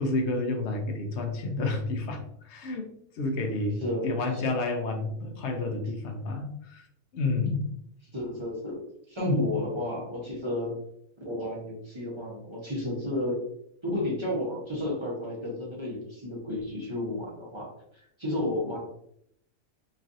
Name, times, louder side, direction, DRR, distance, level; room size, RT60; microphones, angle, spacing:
voice 1, 0.0-2.9 3.1-6.9 7.1-7.6 9.2-9.5, left 2 dB, 65° left, 4 dB, 0.8 m, -30 dB
voice 2, 3.8-4.4 8.1-8.8 9.1-10.8 11.2-13.4 13.8-18.8, left 1 dB, 25° right, -4 dB, 0.7 m, -32 dB
3.1 x 2.4 x 2.5 m, 0.71 s
omnidirectional pair, 1.5 m